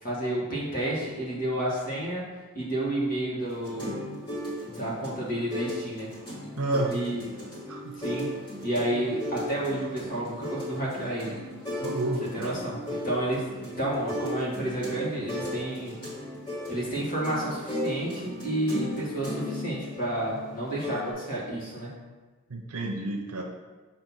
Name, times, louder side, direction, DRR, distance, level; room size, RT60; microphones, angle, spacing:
voice 1, 0.0-2.2 2.5-4.0 4.7-6.1 6.9-7.3 7.9-8.3 8.6-11.4 12.3-15.9 16.7-21.9, right 1 dB, 40° left, -6 dB, 1.5 m, -30 dB
sound 1, 3.4-21.1, left 1 dB, 20° left, 1.7 m, -36 dB
voice 2, 6.6-6.9 7.7-8.0 11.8-12.6 22.5-23.4, right 2 dB, 85° right, 1 dB, 0.7 m, -30 dB
6.0 x 2.8 x 5.5 m, 1.3 s
head